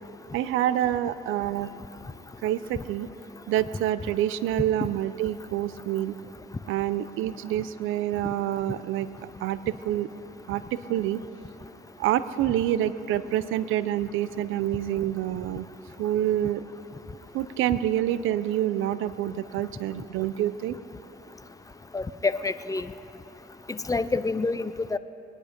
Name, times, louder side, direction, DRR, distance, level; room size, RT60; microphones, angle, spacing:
voice 1, 0.3-1.7 2.4-3.1 3.5-6.2 6.7-10.1 10.5-11.2 12.0-15.7 16.0-16.6 17.3-20.8, right 12 dB, 90° right, 15 dB, 0.5 m, -27 dB
voice 2, 21.9-22.9 23.7-25.0, left 3 dB, 15° left, 13 dB, 0.5 m, -27 dB
22.5 x 10.0 x 5.1 m, 2.9 s
cardioid pair, 90°, 20 cm